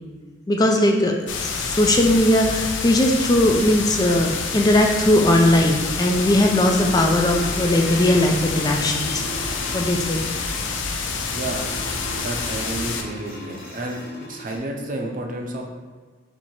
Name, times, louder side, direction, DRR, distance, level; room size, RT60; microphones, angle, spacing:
voice 1, 0.5-9.2 9.7-10.2, left 1 dB, 20° left, 2 dB, 0.4 m, -19 dB
sound 1, 1.3-13.0, left 4 dB, 80° left, 0.5 m, -28 dB
sound 2, 5.8-14.6, equal, 55° left, 1.1 m, -37 dB
voice 2, 11.3-11.7 12.1-15.7, right 1 dB, 45° right, 2 dB, 0.6 m, -31 dB
4.5 x 2.8 x 4.2 m, 1.5 s
head